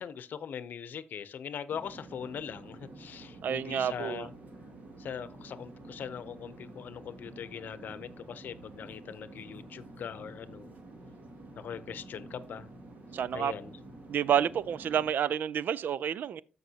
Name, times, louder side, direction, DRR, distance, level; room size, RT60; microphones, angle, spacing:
voice 1, 0.0-4.3 5.0-10.7 11.6-12.7 13.3-13.7, left 8 dB, 75° left, 0.7 m, -41 dB
sound 1, 1.7-15.1, right 2 dB, 55° right, 2.1 m, -49 dB
voice 2, 3.4-4.3 13.1-13.5 14.1-16.4, right 9 dB, 75° right, 0.4 m, -29 dB
14.0 x 5.3 x 2.8 m
wide cardioid pair, 130°, 3 cm